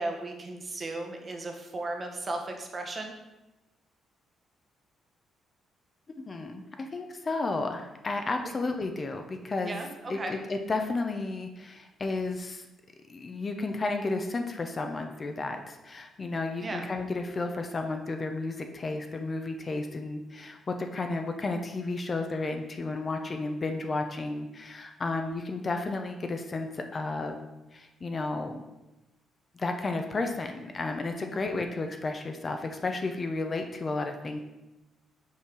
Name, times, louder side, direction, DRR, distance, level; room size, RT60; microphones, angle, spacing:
voice 1, 0.0-3.2 9.6-10.3 16.6-16.9 31.3-31.5, right 2 dB, 35° right, 3 dB, 1.1 m, -35 dB
voice 2, 6.2-9.8 10.1-12.7 13.1-27.4 27.7-28.6 29.5-34.4, left 3 dB, 35° left, 5 dB, 0.7 m, -32 dB
5.6 x 4.4 x 4.8 m, 1.0 s
cardioid pair, 90°, 0 cm